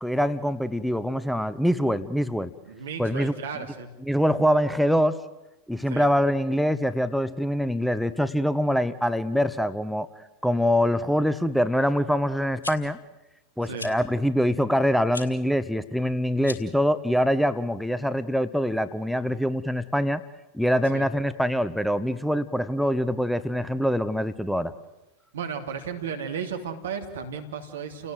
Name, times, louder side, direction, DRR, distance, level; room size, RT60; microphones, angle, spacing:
voice 1, 0.0-2.5 3.0-3.3 4.1-5.2 5.7-10.1 10.4-13.0 13.6-20.2 20.5-24.7, equal, ahead, 12 dB, 1.0 m, -24 dB
voice 2, 2.7-3.9 5.9-6.1 13.6-13.9 20.8-21.1 25.3-28.1, right 6 dB, 75° right, 6 dB, 3.0 m, -34 dB
sound 1, 12.4-12.7 13.7-13.9 15.1-15.3 16.4-16.8, left 3 dB, 85° left, 2.0 m, -37 dB
30.0 x 18.0 x 7.8 m, 1.0 s
hypercardioid pair, 85°, 0 cm